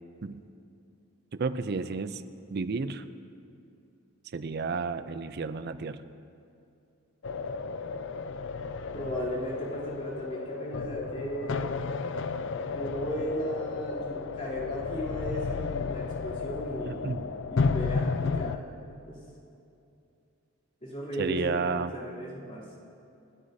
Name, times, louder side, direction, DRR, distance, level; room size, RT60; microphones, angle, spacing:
voice 1, 1.3-2.2 2.5-3.0 4.3-6.0 16.9-17.3 21.2-21.9, right 4 dB, 45° right, 12 dB, 0.4 m, -32 dB
sound 1, 7.2-18.6, left 4 dB, 55° left, 0.4 m, -32 dB
voice 2, 8.9-11.7 12.7-17.1 17.5-18.8 19.1-19.2 20.8-22.6, equal, 30° left, -8 dB, 3.1 m, -36 dB
29.0 x 9.6 x 2.7 m, 2.6 s
head